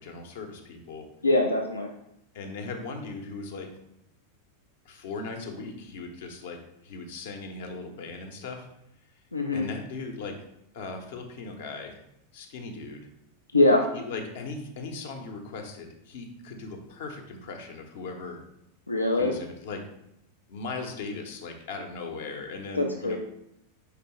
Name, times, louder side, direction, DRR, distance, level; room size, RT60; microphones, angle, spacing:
voice 1, 0.0-1.1 2.3-3.7 4.8-8.7 9.5-10.4 10.7-12.0 12.3-13.1 13.9-18.4 19.1-19.8 20.5-23.2, left 3 dB, 55° left, 4 dB, 0.7 m, -38 dB
voice 2, 1.2-1.9 9.3-9.7 13.5-13.9 18.9-19.3 22.7-23.2, left 2 dB, 80° left, 2 dB, 0.4 m, -23 dB
4.9 x 3.3 x 3.0 m, 0.79 s
figure-of-eight pair, 90°, 0 cm